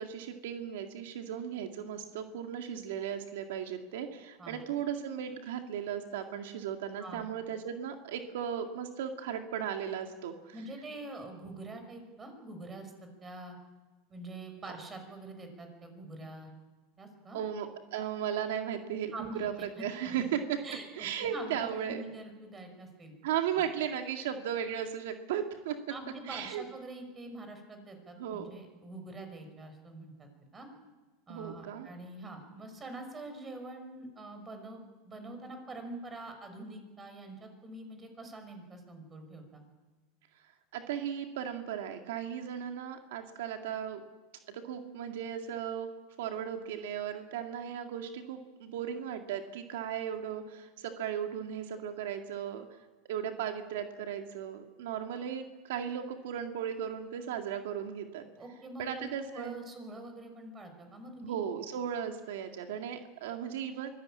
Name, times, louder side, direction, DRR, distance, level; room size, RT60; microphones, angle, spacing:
voice 1, 0.0-10.5 17.3-19.5 19.8-20.6 21.0-22.1 23.2-25.8 26.3-26.6 28.2-28.5 31.3-31.9 40.7-44.0 44.5-45.9 46.2-52.6 53.1-58.2 58.8-59.6 61.2-63.9, right 9 dB, 75° right, 4 dB, 2.1 m, -36 dB
voice 2, 10.5-13.6 14.1-16.5 17.0-17.4 19.1-20.2 20.6-23.2 25.9-30.7 31.3-39.6 58.4-61.4, right 2 dB, 15° right, 6 dB, 5.4 m, -45 dB
24.5 x 17.5 x 8.7 m, 1.2 s
supercardioid pair, 140°, 0 cm